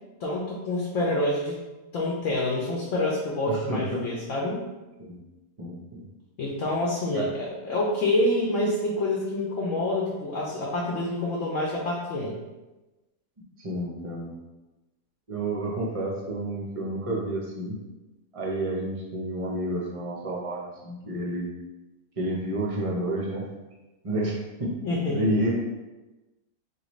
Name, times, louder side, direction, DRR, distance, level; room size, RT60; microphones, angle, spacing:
voice 1, 0.2-1.6 1.9-4.6 6.4-12.4 24.8-25.3, left 1 dB, 65° left, -2 dB, 1.0 m, -27 dB
voice 2, 3.5-4.0 5.0-5.2 5.6-6.0 7.1-7.3 13.6-14.3 15.3-17.8 18.3-21.5 22.2-23.5 24.0-25.5, right 1 dB, 40° right, -3 dB, 0.5 m, -30 dB
4.0 x 3.1 x 3.1 m, 1.1 s
omnidirectional pair, 1.6 m